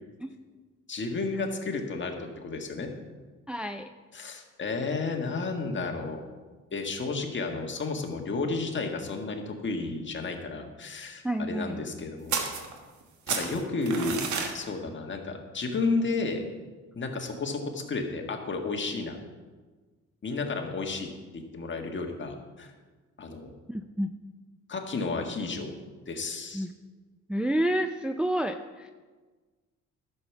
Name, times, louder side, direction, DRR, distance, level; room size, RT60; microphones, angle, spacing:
voice 1, 0.9-2.9 4.1-6.2 6.7-12.4 13.3-14.2 14.5-16.4 16.9-19.2 20.2-21.1 21.3-22.7 23.2-23.5 24.7-25.7 26.1-26.7, left 3 dB, 40° left, 3 dB, 1.7 m, -32 dB
voice 2, 3.5-3.9 11.2-11.8 23.7-24.1 26.5-26.7 27.3-28.9, right 1 dB, 5° right, 6 dB, 0.4 m, -29 dB
sound 1, 12.3-13.0 13.3-14.5, right 6 dB, 70° right, 1.6 m, -31 dB
11.0 x 7.1 x 6.0 m, 1.4 s
cardioid pair, 90°, 30 cm